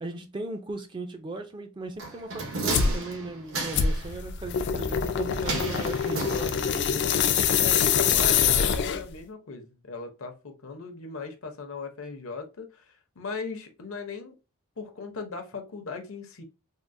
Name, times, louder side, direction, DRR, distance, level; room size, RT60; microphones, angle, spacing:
voice 1, 0.0-7.1, right 2 dB, 20° right, 0.4 m, -37 dB
sound 1, 2.0-4.1 5.5-6.9 7.2-7.3, right 3 dB, 65° right, 0.8 m, -33 dB
sound 2, 2.7-3.0 3.7-9.2, left 7 dB, 55° left, 0.3 m, -24 dB
voice 2, 7.6-14.4 14.8-16.4, left 4 dB, 75° left, 0.7 m, -38 dB
3.6 x 2.0 x 2.5 m
head